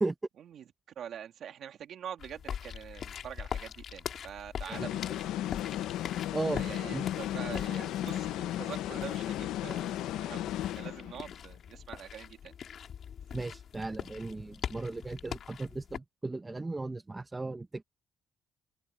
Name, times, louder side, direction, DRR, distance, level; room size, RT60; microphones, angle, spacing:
voice 1, 0.4-5.3 6.4-12.6, right 9 dB, 70° right, 2.8 m, -45 dB
sound 1, 2.2-16.0, left 8 dB, 60° left, 4.0 m, -43 dB
sound 2, 4.7-11.3, left 13 dB, 90° left, 0.8 m, -35 dB
voice 2, 13.3-17.8, right 2 dB, 20° right, 0.9 m, -35 dB
open air
cardioid pair, 90°, 0 cm